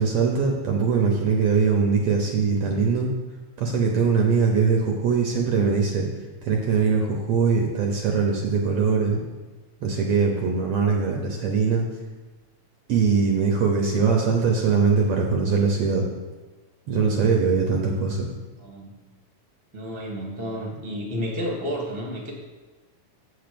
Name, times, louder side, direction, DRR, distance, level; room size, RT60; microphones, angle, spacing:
voice 1, 0.0-3.1 3.6-6.1 6.4-9.2 9.8-11.9 12.9-16.1 16.9-18.3, right 5 dB, 65° right, 1 dB, 1.7 m, -22 dB
voice 2, 18.6-19.0 19.7-22.3, equal, 5° right, -2 dB, 1.0 m, -31 dB
8.4 x 4.6 x 6.9 m, 1.3 s
omnidirectional pair, 3.4 m